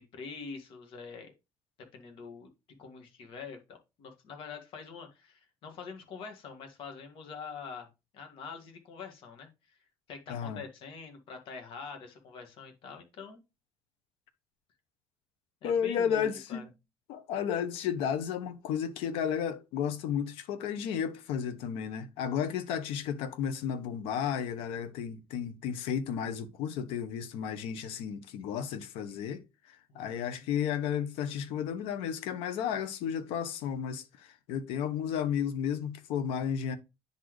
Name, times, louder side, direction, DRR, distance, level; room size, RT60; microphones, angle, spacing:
voice 1, 0.0-1.3 1.8-2.5 2.8-7.9 8.1-9.8 10.1-13.4 15.6-16.7 29.9-30.5, left 5 dB, 65° left, 1.9 m, -45 dB
voice 2, 10.3-10.6 15.6-16.7 17.1-29.4 29.7-36.8, left 8 dB, 85° left, 1.0 m, -33 dB
9.8 x 4.1 x 3.2 m
cardioid pair, 125°, 10 cm